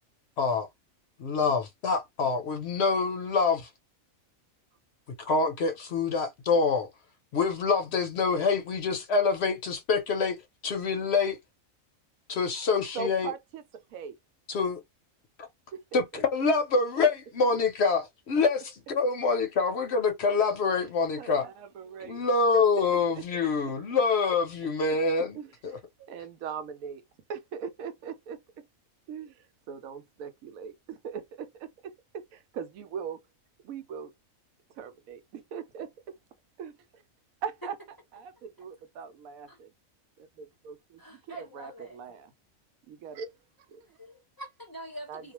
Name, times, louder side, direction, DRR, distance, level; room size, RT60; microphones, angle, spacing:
voice 1, 0.4-0.7 1.2-3.7 5.2-6.9 7.3-10.4 10.6-11.4 12.3-13.3 14.5-14.8 15.9-16.0 16.3-21.5 22.0-25.4, left 4 dB, 60° left, 0.8 m, -26 dB
voice 2, 12.9-14.2 15.7-16.2 17.5-17.6 20.8-20.9 21.2-22.2 22.5-23.8 24.6-27.0 27.3-28.7 29.1-33.2 33.6-34.1 34.7-36.2 36.6-37.0 37.4-37.8 38.1-39.7 40.2-42.3 42.9-43.3 43.6-44.0 45.1-45.2, right 6 dB, 85° right, 1.0 m, -40 dB
voice 3, 41.0-42.0 43.9-45.3, right 1 dB, 20° left, 0.6 m, -44 dB
2.4 x 2.3 x 2.9 m
omnidirectional pair, 1.4 m